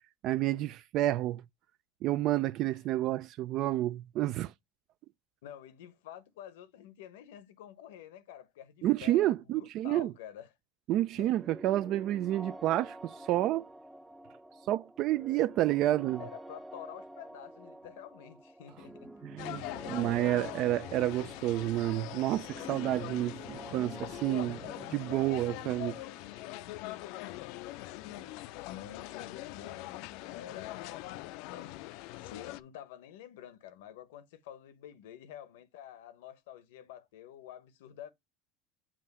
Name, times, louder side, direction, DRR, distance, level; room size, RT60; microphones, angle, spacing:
voice 1, 0.2-1.4 2.0-4.5 8.8-10.1 10.9-13.6 14.7-16.2 19.3-26.0, right 14 dB, 55° right, 0.3 m, -30 dB
voice 2, 5.4-10.5 11.1-11.4 16.2-19.1 25.1-25.6 28.6-31.0 31.5-31.8 32.2-38.1, left 10 dB, 85° left, 0.9 m, -49 dB
sound 1, 11.3-28.9, right 1 dB, 5° right, 0.5 m, -49 dB
sound 2, 19.4-32.6, left 17 dB, 65° left, 0.4 m, -42 dB
7.3 x 2.5 x 5.4 m
supercardioid pair, 110°, 0 cm